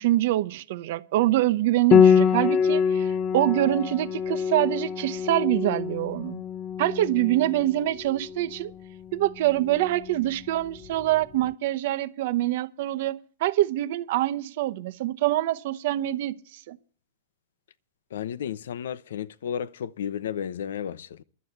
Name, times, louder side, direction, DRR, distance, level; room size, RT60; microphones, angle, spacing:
voice 1, 0.0-6.4 6.8-8.7 9.1-16.8, right 15 dB, 50° right, 0.9 m, -25 dB
Piano, 1.9-11.2, left 7 dB, 25° left, 0.5 m, -25 dB
voice 2, 18.1-21.2, left 9 dB, 80° left, 0.8 m, -33 dB
11.5 x 8.7 x 7.9 m
supercardioid pair, 165°, 0 cm